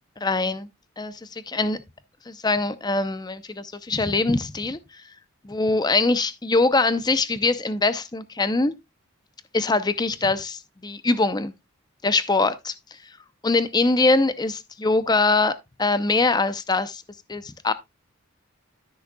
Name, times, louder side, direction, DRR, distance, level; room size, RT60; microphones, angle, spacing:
voice 1, 0.2-0.6 1.0-1.8 2.3-4.8 5.4-8.7 9.5-11.5 12.0-12.7 13.4-17.0 17.3-17.7, left 3 dB, 20° left, 0.6 m, -23 dB
13.0 x 6.4 x 2.3 m
head